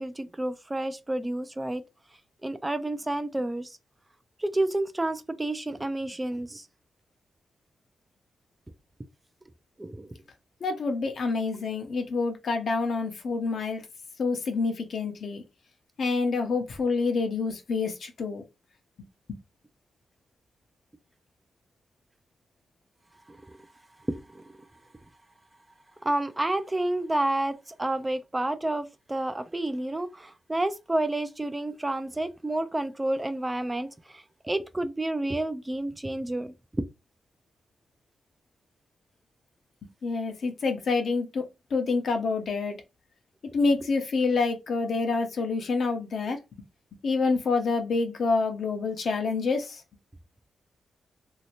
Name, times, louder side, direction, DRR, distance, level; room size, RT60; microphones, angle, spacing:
voice 1, 0.0-1.8 2.4-3.8 4.4-6.7 9.8-10.1 23.3-23.6 24.1-24.5 26.0-36.8, right 1 dB, 15° right, 0.4 m, -30 dB
voice 2, 10.6-13.8 14.2-15.4 16.0-18.4 19.3-19.4 39.8-42.8 43.5-46.6 47.0-49.8, left 4 dB, 70° left, 0.8 m, -27 dB
3.0 x 2.8 x 2.9 m
cardioid pair, 80°, 0 cm